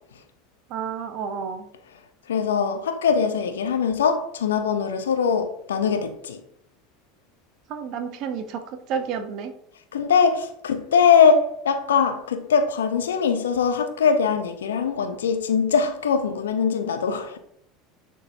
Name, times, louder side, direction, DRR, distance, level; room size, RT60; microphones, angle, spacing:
voice 1, 0.7-1.7 7.7-8.6 8.9-9.5, right 6 dB, 50° right, 1.0 m, -30 dB
voice 2, 2.3-6.4 9.9-17.4, left 6 dB, 75° left, 0.8 m, -21 dB
10.5 x 3.9 x 2.9 m
figure-of-eight pair, 75°, 0 cm